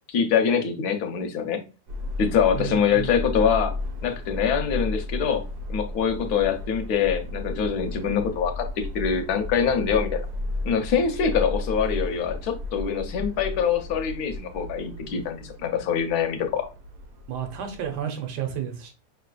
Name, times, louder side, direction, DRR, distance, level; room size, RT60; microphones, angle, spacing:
voice 1, 0.1-1.6 2.2-3.7 4.0-5.4 5.7-10.2 10.6-16.7, left 7 dB, 70° left, 1.2 m, -24 dB
Subway metro underground, 1.9-18.0, left 2 dB, 70° right, 1.3 m, -34 dB
voice 2, 2.5-3.1 17.3-18.9, right 9 dB, 90° right, 1.4 m, -31 dB
5.4 x 3.2 x 2.3 m
omnidirectional pair, 1.8 m